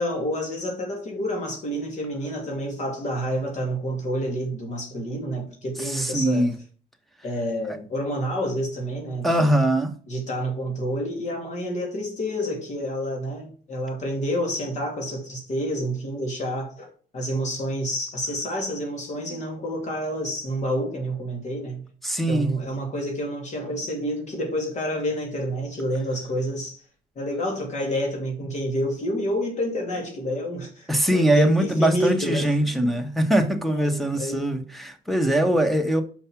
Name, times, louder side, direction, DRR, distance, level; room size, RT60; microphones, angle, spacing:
voice 1, 0.0-6.5 7.2-9.5 10.1-21.9 22.3-26.8 27.2-33.0 33.7-34.5 35.4-35.5, equal, 45° left, 2.7 m, -29 dB
voice 2, 5.8-6.5 9.2-9.9 22.0-22.6 30.9-36.0, right 1 dB, ahead, 1.2 m, -22 dB
5.9 x 5.5 x 5.8 m
cardioid pair, 110°, 17 cm